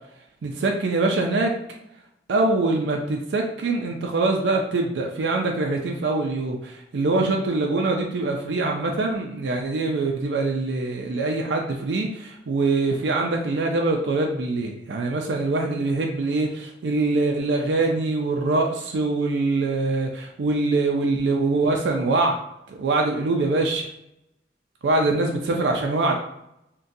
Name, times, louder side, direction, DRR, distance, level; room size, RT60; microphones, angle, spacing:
voice 1, 0.4-1.5 2.3-22.4 22.7-23.8 24.8-26.2, right 3 dB, 90° right, 1 dB, 0.4 m, -23 dB
3.8 x 2.2 x 2.6 m, 0.81 s
head